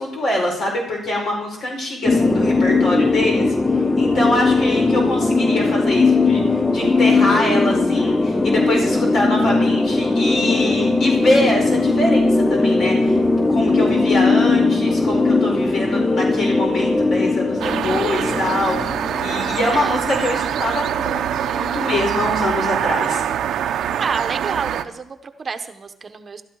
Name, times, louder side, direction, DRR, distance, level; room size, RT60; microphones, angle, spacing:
voice 1, 0.0-3.4 3.7-13.2 13.5-18.8 19.2-23.2, left 1 dB, 65° left, 0 dB, 4.8 m, -24 dB
sound 1, 2.0-19.8, left 3 dB, 15° left, 0.7 m, -18 dB
sound 2, 17.6-24.8, right 9 dB, 75° right, 0.8 m, -24 dB
voice 2, 24.0-26.4, right 5 dB, 40° right, 8 dB, 1.0 m, -29 dB
15.5 x 12.5 x 4.8 m, 0.84 s
cardioid pair, 90°, 0 cm